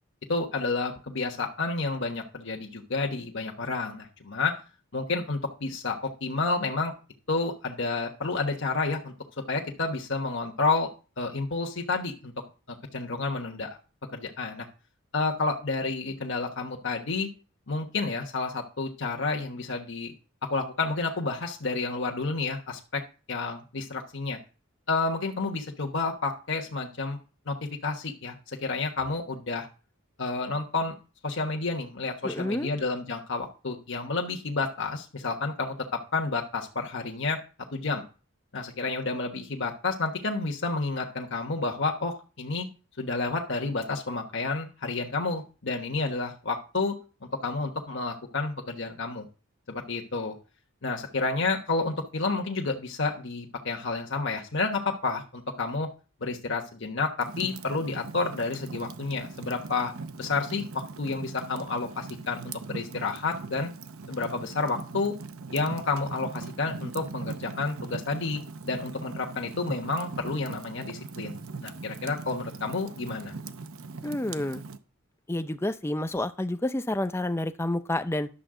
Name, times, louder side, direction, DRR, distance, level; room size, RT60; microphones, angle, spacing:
voice 1, 0.3-4.6 4.9-6.9 7.3-9.1 9.5-10.9 11.2-12.3 12.7-13.7 14.1-14.7 15.1-17.3 17.7-20.1 20.5-23.0 23.3-24.4 24.9-27.2 27.5-27.6 27.8-29.7 30.2-30.9 31.2-37.4 37.7-38.0 38.5-42.7 43.0-46.9 47.4-49.3 49.7-50.3 50.8-55.9 56.2-59.9 60.2-63.7 64.1-65.1 65.5-71.3 71.6-73.3, left 3 dB, 60° left, 2 dB, 1.2 m, -30 dB
voice 2, 32.2-32.7 74.0-74.6 75.3-78.3, left 1 dB, 10° left, 10 dB, 0.5 m, -29 dB
Fire, 57.2-74.8, right 4 dB, 75° right, 0.8 m, -40 dB
11.0 x 7.1 x 3.8 m, 0.35 s
head